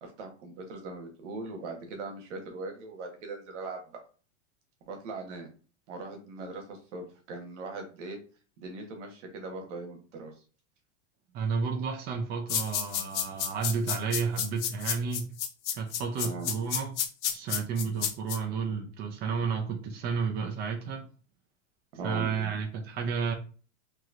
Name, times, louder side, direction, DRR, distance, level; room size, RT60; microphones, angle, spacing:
voice 1, 0.0-3.8 4.9-5.5 5.9-8.2 8.6-10.3 16.2-16.5 22.0-22.3, right 3 dB, 75° right, 1.3 m, -40 dB
voice 2, 11.3-15.3 15.7-16.9 17.3-21.1 22.0-23.3, right 5 dB, 25° right, 0.5 m, -31 dB
sound 1, 12.5-18.4, left 9 dB, 70° left, 0.7 m, -30 dB
3.0 x 2.9 x 2.5 m
supercardioid pair, 130°, 36 cm